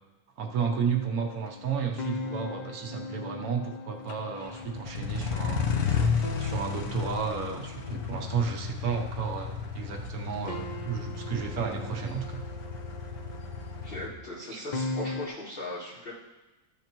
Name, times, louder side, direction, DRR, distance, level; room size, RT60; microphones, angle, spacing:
voice 1, 0.4-5.7 6.4-12.4 14.5-14.6, right 6 dB, 75° right, 3 dB, 1.3 m, -32 dB
sound 1, 0.6-9.9 10.5-15.3, left 2 dB, 55° left, 0.4 m, -40 dB
sound 2, 1.5-1.6 4.1-14.1, left 6 dB, 85° left, 1.4 m, -33 dB
voice 2, 13.8-16.1, left 1 dB, 40° left, -12 dB, 3.9 m, -38 dB
13.5 x 6.3 x 3.0 m, 1.0 s
omnidirectional pair, 1.6 m